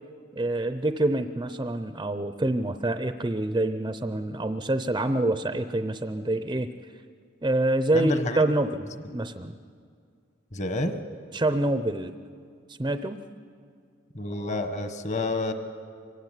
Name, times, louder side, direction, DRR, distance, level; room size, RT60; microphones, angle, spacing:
voice 1, 0.3-6.7 7.4-9.5 11.3-12.1 12.8-13.2, right 1 dB, 20° right, 10 dB, 0.6 m, -26 dB
voice 2, 7.9-8.4 10.5-11.0 14.1-15.5, left 2 dB, 35° left, 8 dB, 1.4 m, -28 dB
24.5 x 16.5 x 9.9 m, 2.2 s
head